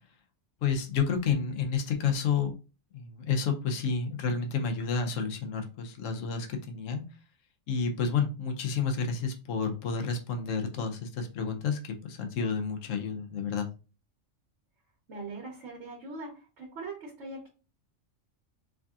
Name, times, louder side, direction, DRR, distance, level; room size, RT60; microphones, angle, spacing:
voice 1, 0.6-2.5 2.9-7.0 7.7-13.7, left 5 dB, 80° left, 5 dB, 1.1 m, -30 dB
voice 2, 15.1-17.5, right 3 dB, 65° right, -3 dB, 1.4 m, -41 dB
4.8 x 2.7 x 2.3 m, 0.33 s
omnidirectional pair, 1.3 m